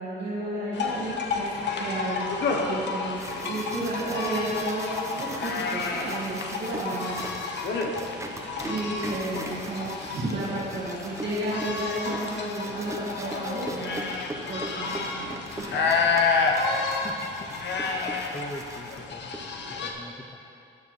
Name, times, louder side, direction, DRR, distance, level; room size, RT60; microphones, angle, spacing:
voice 1, 0.0-1.5 1.8-7.6 8.6-14.1 14.5-15.3 15.6-15.8, right 1 dB, 65° right, -9 dB, 2.1 m, -32 dB
sound 1, 0.7-19.9, left 4 dB, 60° left, 1.1 m, -30 dB
sound 2, 3.2-19.4, right 1 dB, 15° right, 1.0 m, -41 dB
voice 2, 17.0-17.5 18.3-19.3 19.8-20.6, left 2 dB, 20° left, 7 dB, 0.6 m, -42 dB
13.0 x 7.2 x 3.3 m, 2.6 s
cardioid pair, 90°, 20 cm